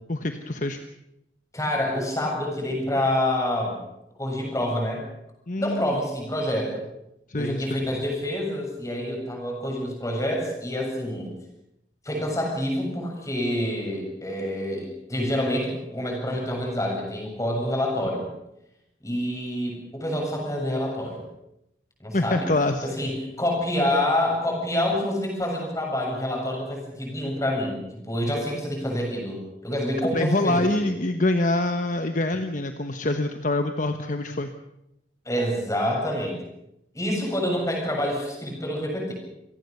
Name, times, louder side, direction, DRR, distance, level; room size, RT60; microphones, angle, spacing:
voice 1, 0.1-0.8 5.5-5.9 7.3-7.8 22.1-22.9 30.1-34.5, left 2 dB, 45° left, 7 dB, 1.2 m, -25 dB
voice 2, 1.5-3.8 4.2-5.0 5.6-6.8 7.3-11.3 12.0-18.3 19.0-21.2 22.0-22.5 22.8-30.9 35.3-36.4 36.9-39.1, left 1 dB, 20° left, 0 dB, 7.6 m, -27 dB
27.5 x 18.0 x 6.8 m, 0.84 s
head